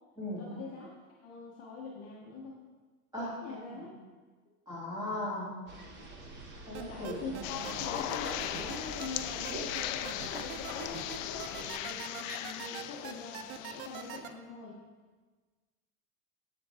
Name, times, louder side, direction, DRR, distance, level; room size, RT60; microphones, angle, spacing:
voice 1, 0.4-0.9 1.2-2.6 3.2-3.9 6.9-14.8, left 4 dB, 35° left, -3 dB, 1.0 m, -44 dB
voice 2, 3.1-3.8 4.7-5.5 6.7-7.7, left 1 dB, 10° right, -6 dB, 2.4 m, -38 dB
sound 1, 5.7-11.7, right 2 dB, 25° right, 0.9 m, -47 dB
sound 2, 6.7-14.3, right 10 dB, 40° right, 0.5 m, -42 dB
sound 3, 7.4-14.2, left 13 dB, 60° left, 0.5 m, -38 dB
7.8 x 6.9 x 3.4 m, 1.4 s
supercardioid pair, 140°, 45 cm